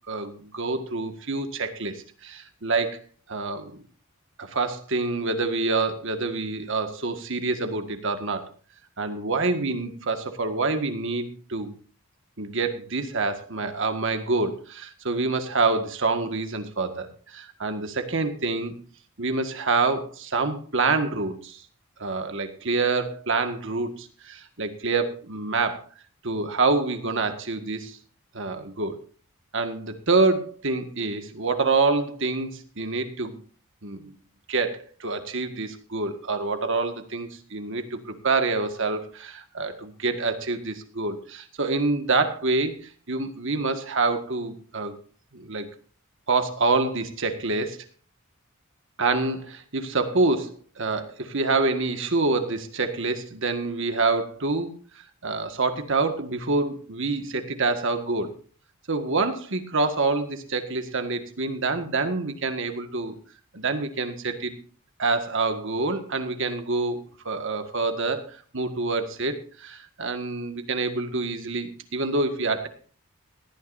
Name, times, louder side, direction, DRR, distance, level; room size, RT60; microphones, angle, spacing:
voice 1, 0.1-3.0 3.3-3.7 4.4-8.5 9.0-11.8 12.4-18.8 19.2-21.6 22.0-25.8 26.2-28.0 28.3-29.0 29.5-33.4 33.8-34.1 34.5-42.8 43.1-45.0 45.3-45.7 46.3-47.8 49.0-54.7 55.2-58.3 58.9-63.1 63.5-64.6 65.0-72.7, right 3 dB, 60° right, 7 dB, 1.7 m, -26 dB
18.5 x 13.0 x 2.7 m, 0.40 s
head